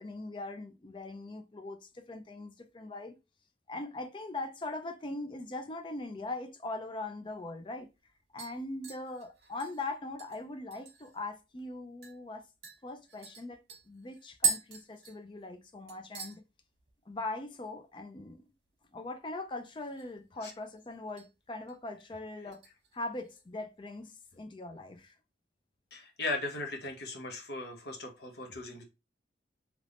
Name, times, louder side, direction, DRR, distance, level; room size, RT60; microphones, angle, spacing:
voice 1, 0.0-3.2 3.7-7.9 8.3-12.4 12.8-13.6 13.9-16.4 17.1-18.4 18.9-22.6 22.9-25.2, left 2 dB, 25° left, 0.4 m, -41 dB
sound 1, 7.3-7.4 7.8-8.1 8.4-11.2 11.6-11.7 12.0-12.2 12.6-15.6 15.9-16.4 16.7-17.1 17.4-17.5 19.6-20.2 20.5-21.3 21.7-22.0 22.5-23.4 23.8-23.9, right 5 dB, 65° right, 1.2 m, -39 dB
voice 2, 25.9-28.8, left 2 dB, 65° left, 0.9 m, -38 dB
3.4 x 3.0 x 2.4 m
head